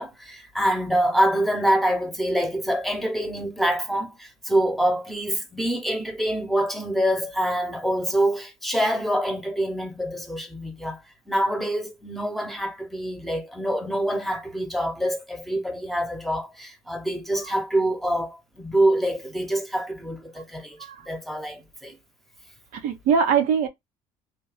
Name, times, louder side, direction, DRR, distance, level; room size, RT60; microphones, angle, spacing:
voice 1, 0.0-11.0 11.3-20.8 21.0-22.0, right 1 dB, ahead, 0.9 m, -25 dB
voice 2, 22.7-23.7, right 6 dB, 80° right, 0.8 m, -22 dB
3.2 x 2.3 x 3.2 m
supercardioid pair, 80°, 13 cm